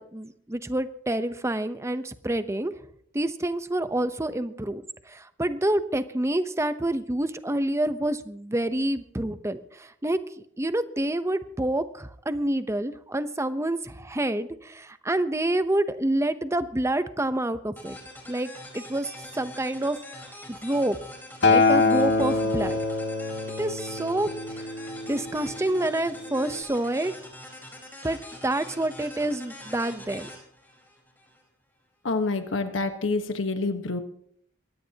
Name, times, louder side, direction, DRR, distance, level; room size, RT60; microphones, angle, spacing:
voice 1, 0.0-2.7 3.1-10.2 10.6-18.0 18.3-20.0 20.5-21.0 21.5-22.8 23.6-24.3 24.6-24.7 25.1-27.1 28.0-28.2 28.4-30.3, right 1 dB, 15° right, 11 dB, 0.8 m, -28 dB
sound 1, 17.8-31.4, left 1 dB, 10° left, 4.4 m, -44 dB
Acoustic guitar, 21.4-25.7 26.6-26.7, left 3 dB, 65° left, 1.9 m, -24 dB
voice 2, 32.0-34.0, left 3 dB, 85° left, 8 dB, 1.3 m, -27 dB
22.5 x 17.0 x 2.9 m, 0.65 s
head